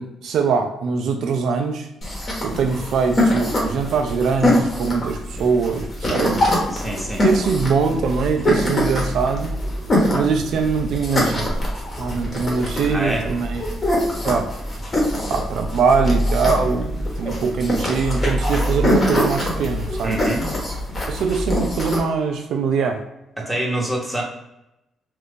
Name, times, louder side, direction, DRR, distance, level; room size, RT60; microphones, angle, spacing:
voice 1, 0.0-1.9 2.4-6.5 7.2-9.6 10.1-11.6 12.0-13.8 14.3-14.5 15.3-20.2 21.1-23.0, right 5 dB, 75° right, 4 dB, 0.4 m, -22 dB
sound 1, 2.0-22.0, left 1 dB, 35° left, 1.0 m, -23 dB
voice 2, 6.7-7.2 12.9-13.3 20.0-20.5 23.4-24.2, right 1 dB, 5° right, -2 dB, 0.9 m, -26 dB
2.6 x 2.4 x 3.6 m, 0.86 s
cardioid pair, 90°, 0 cm